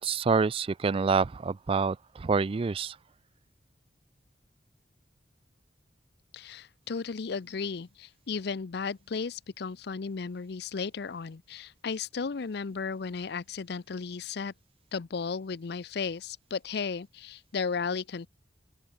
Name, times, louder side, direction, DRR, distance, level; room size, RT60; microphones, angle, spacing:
voice 1, 0.0-3.0, right 5 dB, 30° right, 0.4 m, -27 dB
voice 2, 6.3-14.5 14.9-18.3, left 5 dB, 65° left, 0.5 m, -34 dB
head